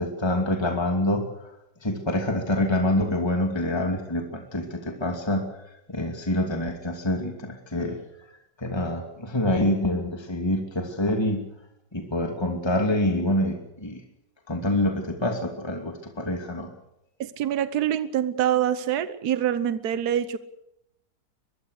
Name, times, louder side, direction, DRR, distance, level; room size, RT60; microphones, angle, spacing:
voice 1, 0.0-1.5 1.8-8.0 8.6-11.4 11.9-14.0 14.5-16.7, left 1 dB, 15° left, 3 dB, 2.6 m, -26 dB
voice 2, 17.2-20.4, right 10 dB, 70° right, 13 dB, 1.5 m, -25 dB
23.0 x 22.5 x 6.7 m, 0.84 s
omnidirectional pair, 1.8 m